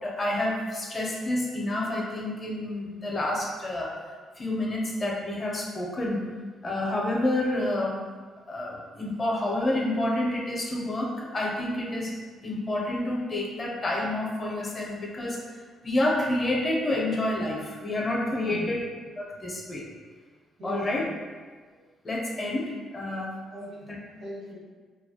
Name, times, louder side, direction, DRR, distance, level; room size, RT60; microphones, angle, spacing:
voice 1, 0.0-4.0 4.4-6.3 6.6-8.0 8.5-12.1 12.4-15.4 15.8-18.8 19.2-19.9 20.6-21.0 22.0-23.4, left 1 dB, 35° left, -2 dB, 0.5 m, -29 dB
voice 2, 18.4-18.7 20.6-21.1 23.5-23.9 24.2-24.5, right 1 dB, 85° right, -8 dB, 1.1 m, -39 dB
2.2 x 2.0 x 2.7 m, 1.5 s
cardioid pair, 90°, 0 cm